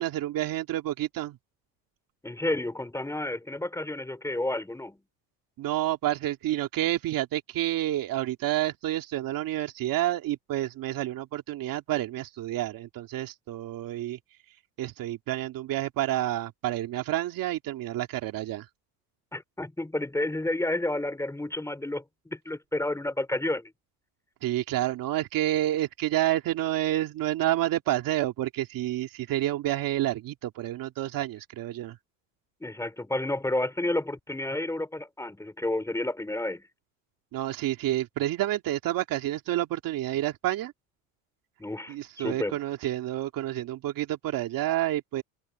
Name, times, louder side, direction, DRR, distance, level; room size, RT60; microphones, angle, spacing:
voice 1, 0.0-1.4 5.6-14.2 14.8-18.7 24.4-32.0 37.3-40.7 41.9-45.2, right 14 dB, 55° right, 2.6 m, -29 dB
voice 2, 2.2-5.0 19.3-23.7 32.6-36.6 41.6-42.6, left 1 dB, 5° left, 5.0 m, -31 dB
open air
supercardioid pair, 110°, 40 cm